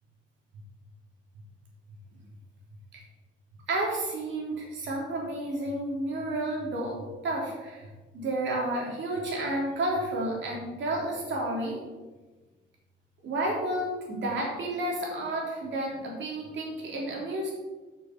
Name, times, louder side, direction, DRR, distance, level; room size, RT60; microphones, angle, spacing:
voice 1, 3.7-6.9 7.2-11.8 13.2-17.5, right 1 dB, 70° right, -2 dB, 3.3 m, -31 dB
7.1 x 6.4 x 6.0 m, 1.2 s
cardioid pair, 90°, 20 cm